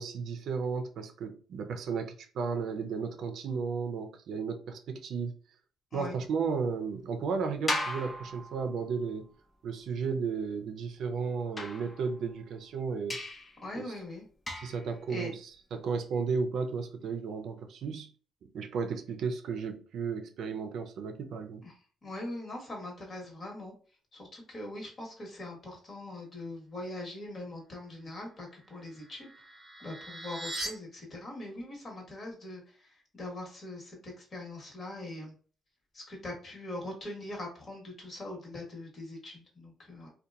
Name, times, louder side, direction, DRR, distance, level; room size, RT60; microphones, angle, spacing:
voice 1, 0.0-5.3 5.9-9.3 9.6-13.2 13.7-14.0 14.6-18.1 18.4-21.7, right 5 dB, 70° right, 0.4 m, -34 dB
sound 1, 7.7-9.1 11.6-12.5 13.1-13.6 14.5-14.9, left 1 dB, 25° left, 0.5 m, -37 dB
voice 2, 13.6-14.2 15.1-15.3 21.6-21.7 22.0-23.7 24.1-29.3 29.8-32.6 33.1-35.3 35.9-40.1, left 1 dB, 45° left, 1.2 m, -41 dB
sound 2, 28.5-30.7, right 1 dB, 25° right, 0.7 m, -41 dB
2.7 x 2.2 x 2.3 m
cardioid pair, 90°, 0 cm